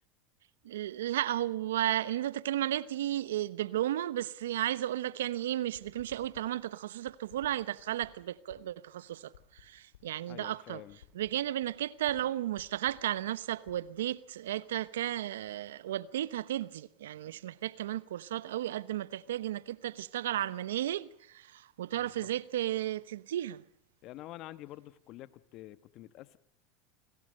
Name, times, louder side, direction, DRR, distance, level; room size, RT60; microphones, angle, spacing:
voice 1, 0.6-10.8 11.1-23.6, right 12 dB, 85° right, 0.9 m, -34 dB
sound 1, 5.4-15.0 15.3-15.7, left 11 dB, 85° left, 7.8 m, -57 dB
voice 2, 10.3-11.0 21.9-22.3 24.0-26.4, left 15 dB, 50° left, 1.3 m, -48 dB
29.0 x 18.5 x 6.6 m
hypercardioid pair, 105°, 0 cm